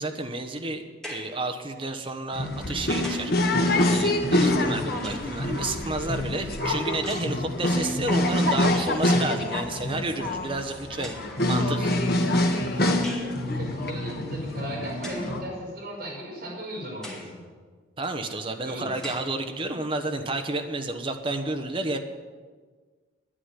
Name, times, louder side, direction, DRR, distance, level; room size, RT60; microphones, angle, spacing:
voice 1, 0.0-3.3 3.9-11.1 11.5-12.0 12.2-12.8 18.0-22.0, right 2 dB, 25° right, 6 dB, 1.0 m, -31 dB
sound 1, 1.0-1.4 2.5-3.4 4.5-5.4 7.0-7.4 8.5-8.6 8.9-9.3 10.3-10.4 11.0-11.5 13.0-13.4 15.0-15.4 16.0-16.1 17.0-17.4 18.0-18.1 19.0-19.4, equal, 5° left, 2.0 m, -41 dB
sound 2, 2.3-15.4, left 1 dB, 50° left, 1.4 m, -26 dB
voice 2, 13.4-17.4 18.6-19.0, equal, 50° right, -4 dB, 5.4 m, -36 dB
9.9 x 9.7 x 9.8 m, 1.5 s
head